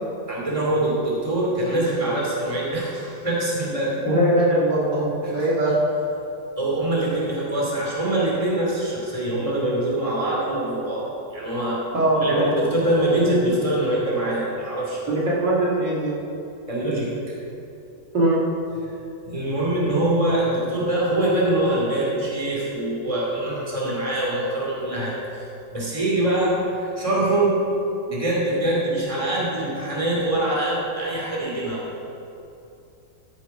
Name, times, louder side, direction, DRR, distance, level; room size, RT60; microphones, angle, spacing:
voice 1, 0.3-4.0 5.2-5.3 6.6-11.8 12.2-15.1 16.7-17.1 18.8-18.9 19.2-27.6 28.1-31.8, right 1 dB, 15° right, -5 dB, 2.7 m, -24 dB
voice 2, 4.1-5.8 11.9-12.5 15.1-16.1 18.1-18.4, right 1 dB, 65° right, -6 dB, 2.8 m, -21 dB
13.5 x 7.5 x 5.6 m, 2.8 s
omnidirectional pair, 2.0 m